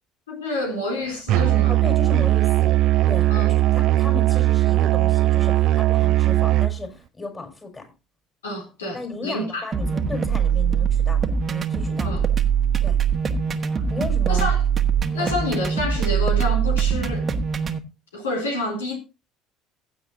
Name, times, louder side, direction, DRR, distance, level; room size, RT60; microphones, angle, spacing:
voice 1, 0.3-1.8 3.3-3.6 8.4-9.7 12.0-12.2 14.3-14.6 15.1-17.3 18.1-19.0, left 1 dB, 80° left, 3.4 m, -28 dB
Musical instrument, 1.3-6.8, right 15 dB, 55° right, 0.4 m, -19 dB
voice 2, 1.7-2.8 3.1-7.9 8.9-12.2 12.8-13.0 13.9-14.5 15.2-15.3, left 3 dB, 25° left, 5.1 m, -35 dB
sound 1, 9.7-17.8, right 7 dB, 35° right, 1.3 m, -22 dB
15.5 x 8.1 x 2.7 m
hypercardioid pair, 65°, 0 cm